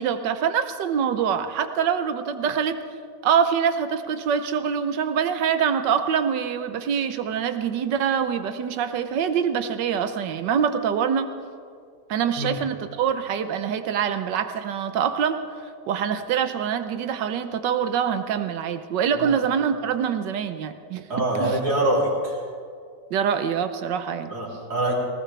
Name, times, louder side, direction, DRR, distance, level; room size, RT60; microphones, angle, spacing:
voice 1, 0.0-2.8 3.2-11.3 12.1-15.4 15.9-21.1 21.4-21.6 23.1-24.3, right 7 dB, 85° right, 9 dB, 1.5 m, -25 dB
voice 2, 21.1-22.4 24.3-25.0, right 1 dB, 60° right, -5 dB, 3.9 m, -24 dB
19.5 x 18.5 x 3.4 m, 2.2 s
omnidirectional pair, 1.9 m